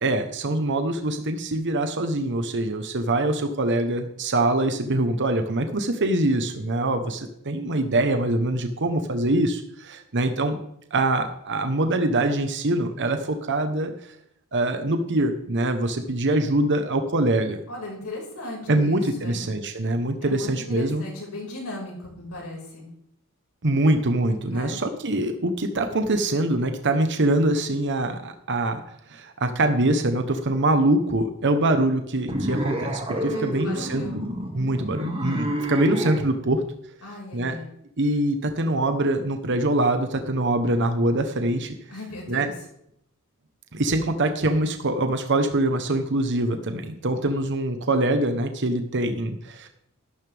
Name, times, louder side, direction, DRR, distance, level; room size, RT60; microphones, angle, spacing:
voice 1, 0.0-10.6 10.9-13.9 14.5-17.6 18.7-21.0 23.6-28.8 29.1-34.0 34.5-36.6 37.3-37.6 38.0-41.7 42.3-42.5 43.7-49.7, right 1 dB, 55° right, 7 dB, 1.1 m, -24 dB
voice 2, 17.7-19.5 20.2-22.9 24.5-24.8 33.3-34.2 37.0-37.7 41.9-42.5, left 1 dB, 85° left, -2 dB, 5.4 m, -37 dB
sound 1, 32.3-36.3, right 1 dB, 25° right, 2.1 m, -29 dB
13.0 x 12.0 x 3.5 m, 0.73 s
head